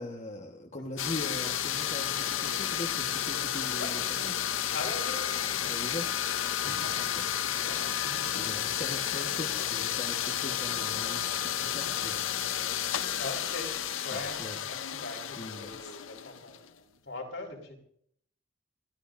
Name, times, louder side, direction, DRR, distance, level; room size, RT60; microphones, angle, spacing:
voice 1, 0.0-4.3 5.7-6.1 6.6-7.3 8.2-12.2 14.1-14.6 15.4-16.0, left 1 dB, 35° left, 1.3 m, -41 dB
sound 1, 1.0-16.7, left 10 dB, 90° left, 0.7 m, -32 dB
voice 2, 4.7-6.1 6.5-7.1 7.4-8.8 9.5-9.6 10.7-10.9 13.1-13.7 14.0-17.7, left 2 dB, 70° left, 4.1 m, -42 dB
28.5 x 14.5 x 2.6 m
head